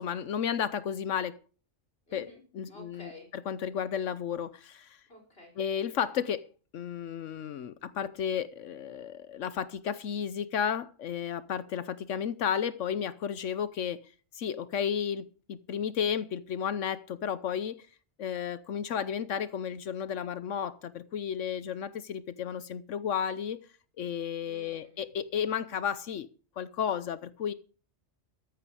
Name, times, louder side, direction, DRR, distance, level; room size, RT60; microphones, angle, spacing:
voice 1, 0.0-1.4 2.1-2.3 2.5-3.1 3.5-5.0 5.6-6.4 6.7-14.0 14.3-17.9 18.2-23.6 24.0-26.3 26.6-27.5, left 8 dB, 80° left, 1.1 m, -33 dB
voice 2, 2.1-2.4 2.7-3.3 5.1-5.5 24.4-25.0, left 1 dB, 50° left, 5.0 m, -51 dB
14.0 x 11.0 x 4.8 m
omnidirectional pair, 1.3 m